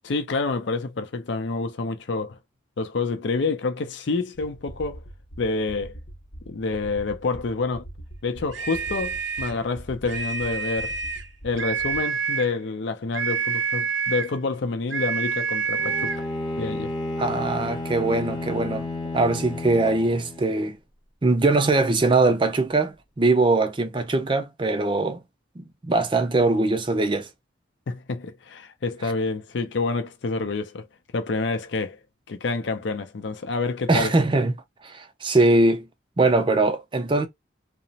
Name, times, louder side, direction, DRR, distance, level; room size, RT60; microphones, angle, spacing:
voice 1, 0.0-2.4 2.8-5.0 5.4-5.9 6.5-7.8 8.2-11.0 11.4-16.1 16.6-16.9 27.9-30.9 31.1-32.0 32.3-34.1, left 3 dB, 70° left, 0.5 m, -28 dB
sound 1, 4.3-12.0, right 1 dB, 50° left, 0.9 m, -43 dB
sound 2, 8.5-9.6 10.0-11.3 11.6-12.5 13.1-14.4 14.9-16.2, right 5 dB, 75° right, 0.6 m, -28 dB
Bowed string instrument, 15.8-20.6, left 2 dB, 20° left, 0.6 m, -32 dB
voice 2, 17.2-18.9 19.1-20.8 21.2-25.2 25.6-27.3 33.9-34.5 34.8-35.9 36.2-37.3, right 2 dB, 25° right, 0.4 m, -21 dB
2.9 x 2.0 x 2.7 m
head